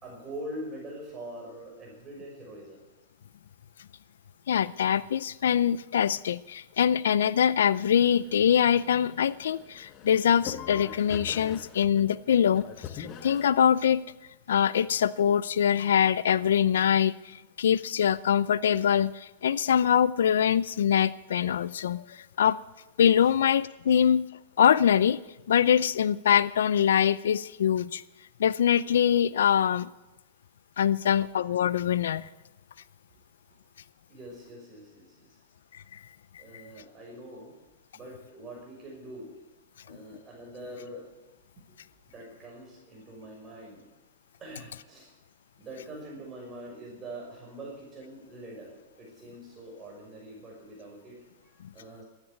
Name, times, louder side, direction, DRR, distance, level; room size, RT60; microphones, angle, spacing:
voice 1, 0.0-2.8 23.2-23.3 23.9-24.0 33.1-33.2 34.1-35.4 36.4-37.5 37.9-39.3 39.8-41.1 42.1-43.9 44.4-45.1 45.6-52.0, right 1 dB, 25° right, -1 dB, 5.7 m, -44 dB
voice 2, 4.5-14.0 14.5-22.6 23.0-24.2 24.6-25.2 25.5-28.0 28.4-29.9 30.8-32.3 35.9-36.0 36.5-36.6 39.9-40.0, left 9 dB, 85° left, 18 dB, 0.4 m, -24 dB
sound 1, 8.0-13.5, left 9 dB, 35° left, 1.3 m, -43 dB
13.0 x 9.8 x 9.4 m, 1.0 s
hypercardioid pair, 135°, 0 cm